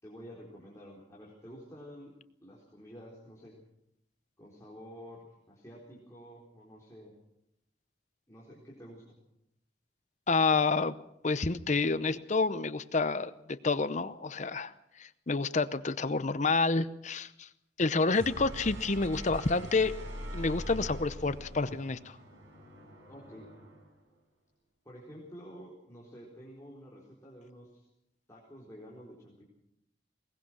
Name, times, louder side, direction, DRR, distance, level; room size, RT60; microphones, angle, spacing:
voice 1, 0.0-2.1 2.4-3.5 4.4-7.1 8.3-9.2 23.1-23.5 24.8-27.9 28.3-29.4, equal, 15° left, -5 dB, 4.2 m, -50 dB
voice 2, 10.3-10.9 11.2-17.5 17.8-20.0 20.3-22.2, left 3 dB, 40° left, 13 dB, 0.7 m, -29 dB
sound 1, 18.0-23.9, equal, 90° right, 6.3 m, -43 dB
21.5 x 20.0 x 6.3 m, 0.81 s
head